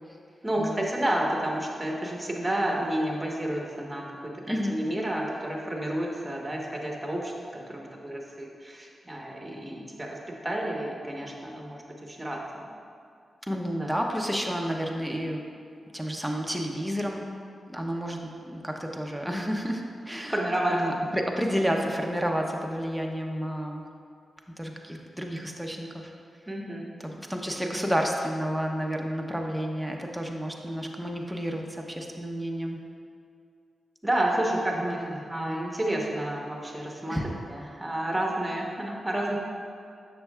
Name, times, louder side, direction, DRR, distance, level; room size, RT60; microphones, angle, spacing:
voice 1, 0.4-12.7 13.8-14.0 20.3-20.8 26.5-26.9 27.5-27.6 34.0-39.4, right 1 dB, 20° right, -1 dB, 1.1 m, -30 dB
voice 2, 4.5-4.8 13.5-15.4 15.9-17.2 17.7-20.3 20.7-23.8 24.6-26.1 27.0-32.8 35.0-35.1 37.1-37.3, equal, 5° right, 1 dB, 0.8 m, -30 dB
6.7 x 6.5 x 2.4 m, 2.3 s
cardioid pair, 45°, 0 cm